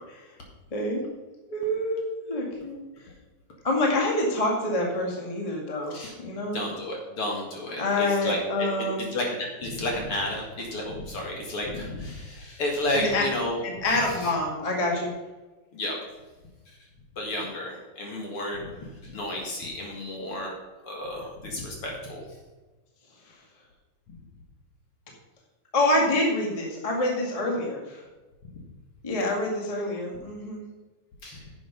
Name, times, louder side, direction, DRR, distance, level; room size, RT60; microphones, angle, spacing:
voice 1, 0.7-1.0 1.5-2.8 3.6-6.6 7.8-9.1 12.9-13.2 13.6-15.1 25.7-28.0 29.0-30.6, left 1 dB, 15° left, -1 dB, 1.5 m, -26 dB
voice 2, 6.5-14.3 15.7-16.0 17.2-20.6 20.8-22.2 24.1-24.2 28.5-28.6 31.2-31.4, left 1 dB, 50° left, -1 dB, 2.7 m, -32 dB
10.5 x 7.8 x 5.3 m, 1.2 s
omnidirectional pair, 3.5 m